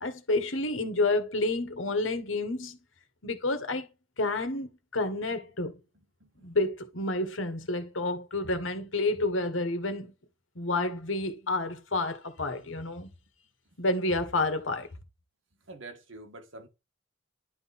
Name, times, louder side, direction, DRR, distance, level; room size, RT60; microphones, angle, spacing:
voice 1, 0.0-2.8 3.2-3.9 4.2-5.8 6.4-10.1 10.5-13.1 13.8-14.9, left 2 dB, 85° left, 1.7 m, -29 dB
voice 2, 15.7-16.7, right 2 dB, 80° right, 1.9 m, -45 dB
11.0 x 3.8 x 4.3 m
head